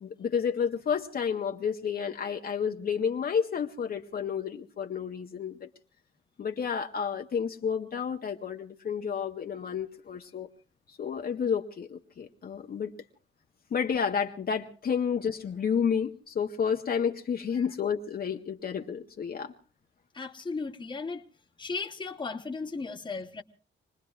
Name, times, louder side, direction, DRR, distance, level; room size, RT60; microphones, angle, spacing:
voice 1, 0.0-5.7 6.4-10.5 10.9-12.9 13.7-19.5, left 7 dB, 45° left, 0.8 m, -30 dB
voice 2, 20.1-21.2 21.6-23.4, left 4 dB, 20° left, 1.0 m, -36 dB
27.0 x 20.5 x 2.4 m
wide cardioid pair, 145°, 21 cm